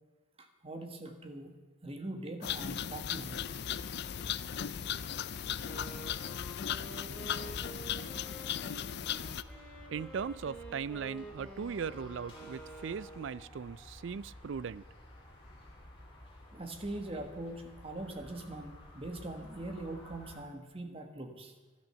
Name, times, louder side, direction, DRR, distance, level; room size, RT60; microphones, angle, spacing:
voice 1, 0.4-3.5 16.5-21.5, right 2 dB, 30° right, 4 dB, 1.5 m, -42 dB
sound 1, 2.4-9.4, left 9 dB, 55° left, 0.4 m, -37 dB
sound 2, 3.1-20.4, left 1 dB, 25° left, 3.4 m, -52 dB
Wind instrument woodwind instrument, 5.6-13.5, right 2 dB, 5° left, 2.0 m, -49 dB
voice 2, 9.9-14.8, right 6 dB, 65° right, 19 dB, 0.4 m, -38 dB
12.0 x 12.0 x 6.9 m, 1.3 s
head